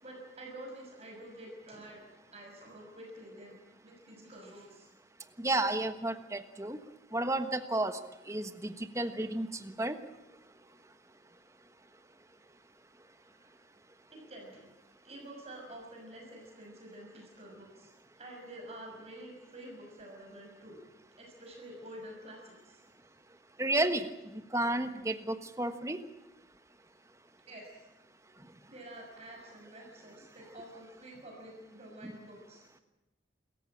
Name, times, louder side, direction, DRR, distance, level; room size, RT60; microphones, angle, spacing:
voice 1, 0.0-2.0 2.3-3.6 3.8-4.9 13.2-13.5 14.1-14.6 15.0-17.9 18.2-20.8 21.2-22.9 27.5-27.9 28.7-32.8, right 1 dB, 35° right, 0 dB, 6.0 m, -49 dB
voice 2, 5.4-6.8 7.1-8.0 8.3-9.5 9.8-10.0 23.6-24.1 24.5-26.0 32.0-32.1, right 2 dB, 15° right, 9 dB, 1.3 m, -31 dB
28.0 x 14.5 x 8.8 m, 1.0 s
head